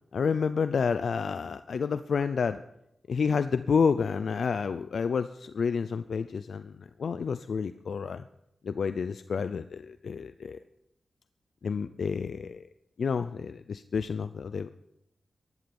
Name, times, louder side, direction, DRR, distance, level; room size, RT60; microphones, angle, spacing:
voice 1, 0.1-2.6 3.1-8.3 8.6-10.6 11.6-12.7 13.0-14.7, left 5 dB, 80° left, 12 dB, 0.5 m, -29 dB
15.0 x 11.0 x 7.0 m, 0.82 s
wide cardioid pair, 95°, 0 cm